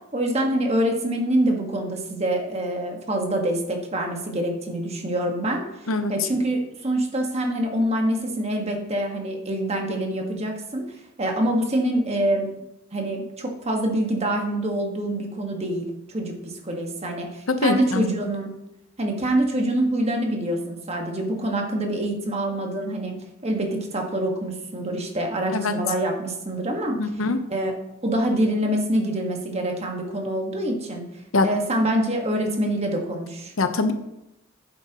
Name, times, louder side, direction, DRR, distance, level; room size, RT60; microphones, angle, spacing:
voice 1, 0.1-5.6 6.1-10.8 11.2-12.6 12.9-18.5 19.0-23.1 23.4-27.0 27.5-27.7 28.0-31.0 31.4-33.5, right 1 dB, 30° right, 2 dB, 1.6 m, -25 dB
voice 2, 5.9-6.3 17.5-18.0 25.5-25.7 27.0-27.4 31.3-31.5 33.6-33.9, left 3 dB, 85° left, 8 dB, 0.9 m, -23 dB
10.5 x 8.9 x 3.0 m, 0.88 s
head